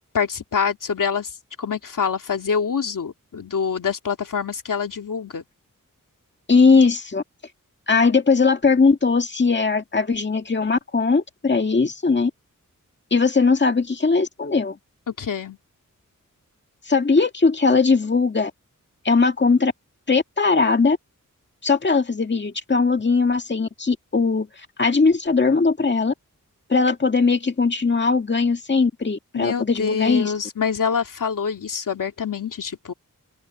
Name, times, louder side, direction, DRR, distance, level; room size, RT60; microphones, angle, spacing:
voice 1, 0.1-1.3 1.6-5.4 15.1-15.6 29.3-32.9, left 6 dB, 75° left, 2.6 m, -25 dB
voice 2, 6.5-7.2 7.9-12.3 13.1-14.8 16.9-18.5 19.0-19.7 20.1-21.0 21.6-24.5 24.8-26.1 26.7-30.3, left 4 dB, 35° left, 2.0 m, -19 dB
open air
wide cardioid pair, 100°, 32 cm